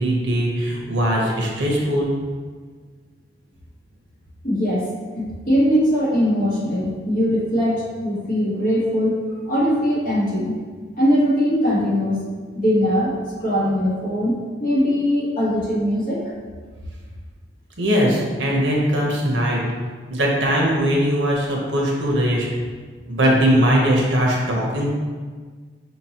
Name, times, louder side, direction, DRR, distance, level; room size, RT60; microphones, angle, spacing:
voice 1, 0.0-2.1 17.8-19.6 20.1-22.5 23.1-24.9, equal, 75° right, -2 dB, 0.9 m, -20 dB
voice 2, 4.4-4.8 5.1-10.6 11.0-12.2 12.5-13.1 13.4-16.2, equal, 45° left, -8 dB, 1.3 m, -21 dB
5.6 x 2.9 x 2.9 m, 1.5 s
head